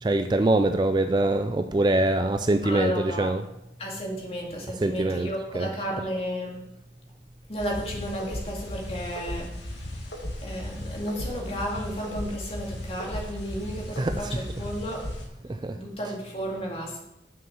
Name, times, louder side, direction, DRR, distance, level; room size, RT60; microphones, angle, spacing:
voice 1, 0.0-3.4 4.7-5.8 14.0-14.6 15.5-15.8 16.0-16.1, right 2 dB, 25° right, 8 dB, 0.4 m, -24 dB
voice 2, 2.6-3.4 3.8-6.6 7.5-10.0 10.4-15.0 15.7-17.0, equal, 35° left, -1 dB, 2.1 m, -33 dB
sound 1, 7.6-15.3, left 1 dB, 70° left, 1.9 m, -36 dB
7.1 x 6.2 x 6.9 m, 0.86 s
head